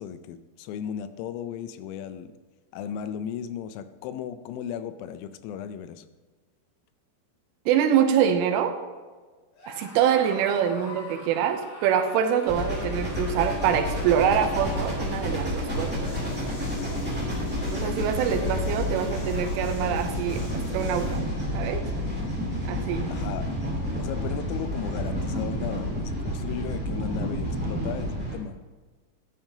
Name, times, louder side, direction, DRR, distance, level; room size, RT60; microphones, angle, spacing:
voice 1, 0.0-2.3 2.7-6.1 17.8-18.0 18.4-18.8 23.1-23.5 24.0-28.6, left 8 dB, 90° left, 11 dB, 3.4 m, -36 dB
voice 2, 7.7-8.8 9.7-15.9 17.7-21.2 21.5-21.9 22.7-23.1, right 8 dB, 80° right, 7 dB, 3.1 m, -25 dB
Screaming, 9.5-16.0, left 1 dB, 45° left, 2.8 m, -45 dB
sound 1, 12.5-28.4, equal, 5° right, 0.9 m, -30 dB
sound 2, 16.0-21.2, left 1 dB, 75° left, 5.2 m, -41 dB
12.0 x 11.5 x 2.8 m, 1.4 s
omnidirectional pair, 5.9 m